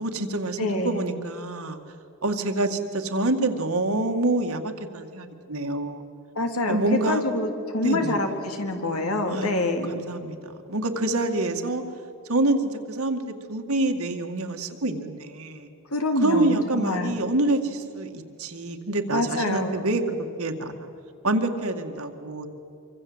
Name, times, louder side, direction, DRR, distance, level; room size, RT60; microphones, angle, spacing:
voice 1, 0.0-1.8 2.2-6.0 6.7-7.2 7.8-8.2 9.3-9.5 9.9-10.4 10.7-11.8 12.3-15.7 16.2-20.9 21.2-22.5, right 2 dB, 70° right, 5 dB, 2.2 m, -26 dB
voice 2, 0.6-1.0 6.3-6.8 7.1-9.9 15.9-17.2 19.1-19.8, left 2 dB, 70° left, 5 dB, 3.2 m, -26 dB
26.0 x 25.0 x 8.1 m, 2.6 s
head